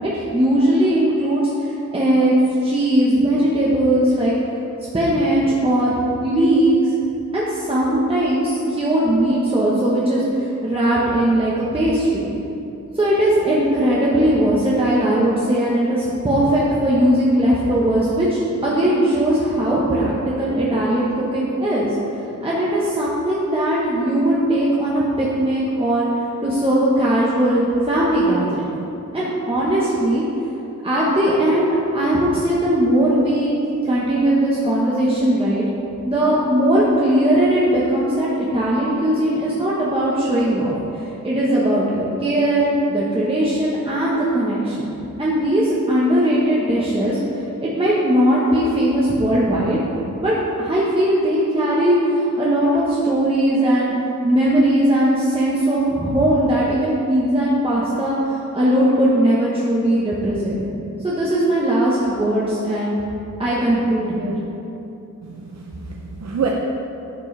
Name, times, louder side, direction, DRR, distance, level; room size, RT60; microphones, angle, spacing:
voice 1, 0.0-2.3 2.6-4.3 4.9-6.9 7.3-12.3 12.9-21.9 22.4-26.1 26.4-28.6 29.1-30.2 30.8-33.5 33.8-35.6 36.1-44.9 45.2-47.2 47.6-49.8 50.2-53.9 54.2-60.6 61.0-63.0 63.4-64.3, right 1 dB, 20° right, -7 dB, 1.1 m, -19 dB
voice 2, 65.2-66.5, right 6 dB, 60° right, -1 dB, 0.7 m, -27 dB
11.0 x 6.2 x 3.3 m, 2.9 s
wide cardioid pair, 115°, 30 cm